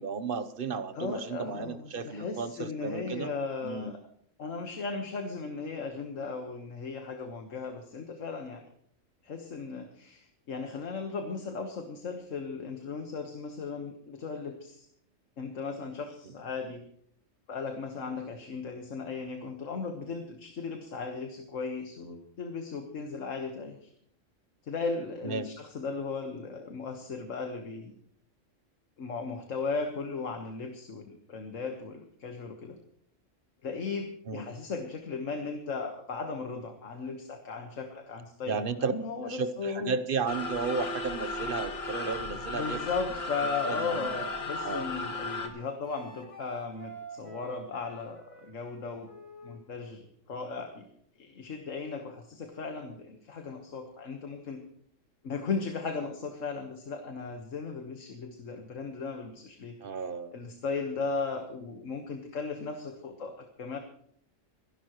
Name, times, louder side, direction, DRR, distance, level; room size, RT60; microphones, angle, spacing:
voice 1, 0.0-3.3 3.6-3.9 25.2-25.5 34.3-34.5 38.5-38.9 39.3-42.8 43.7-44.1 44.6-44.9 59.8-60.3, right 5 dB, 50° right, 12 dB, 1.0 m, -33 dB
voice 2, 0.9-4.0 4.4-8.7 9.2-14.8 15.4-16.9 17.5-23.9 24.6-27.9 29.0-32.8 33.6-38.6 38.9-40.0 42.5-49.1 49.4-50.9 51.2-54.7 55.2-60.0 60.3-63.8, left 4 dB, 75° left, 5 dB, 1.7 m, -36 dB
sound 1, 40.3-45.5, left 2 dB, 55° left, 1.7 m, -35 dB
Wind instrument woodwind instrument, 42.1-49.6, left 1 dB, 25° left, 2.7 m, -47 dB
27.0 x 11.5 x 3.1 m, 0.65 s
omnidirectional pair, 1.3 m